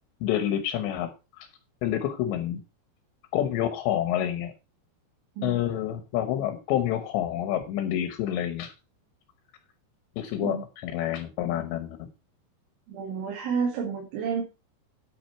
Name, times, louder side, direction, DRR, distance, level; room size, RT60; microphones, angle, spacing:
voice 1, 0.2-1.1 1.4-1.5 1.8-2.6 3.3-4.5 5.4-8.7 10.2-12.1, left 11 dB, 75° left, 8 dB, 3.1 m, -28 dB
voice 2, 12.9-14.4, right 6 dB, 85° right, 1 dB, 4.4 m, -30 dB
9.7 x 8.4 x 4.4 m, 0.28 s
omnidirectional pair, 5.3 m